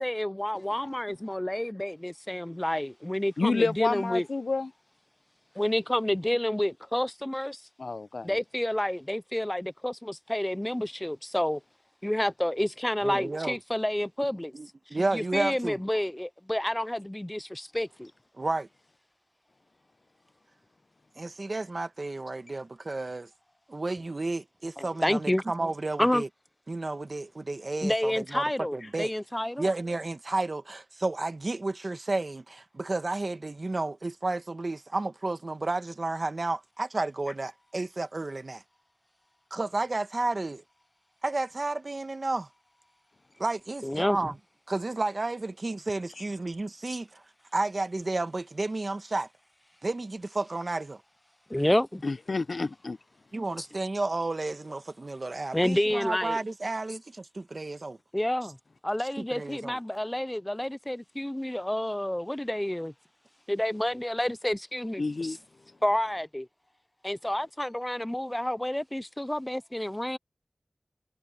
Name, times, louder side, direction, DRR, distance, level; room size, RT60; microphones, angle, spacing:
voice 1, 0.0-4.3 5.6-7.6 8.2-11.6 12.0-14.5 15.1-18.1 24.8-25.4 26.0-26.2 27.8-29.6 43.8-44.3 51.5-52.0 53.6-53.7 55.5-56.4 58.1-58.6 58.8-62.9 63.5-65.4 65.8-66.5 67.0-70.2, left 1 dB, 15° left, 0.4 m, -29 dB
voice 2, 3.4-4.7 7.8-8.3 52.0-53.0 65.0-65.4, left 3 dB, 75° left, 0.6 m, -29 dB
voice 3, 13.0-13.6 14.5-15.8 18.4-18.7 21.2-23.3 23.7-26.3 26.7-28.4 28.7-29.1 29.6-38.6 39.5-40.6 41.2-42.5 43.4-44.3 44.7-47.2 47.5-49.3 49.8-51.0 53.3-58.0 59.3-59.8, right 2 dB, 55° right, 1.2 m, -32 dB
wide cardioid pair, 70°, 0 cm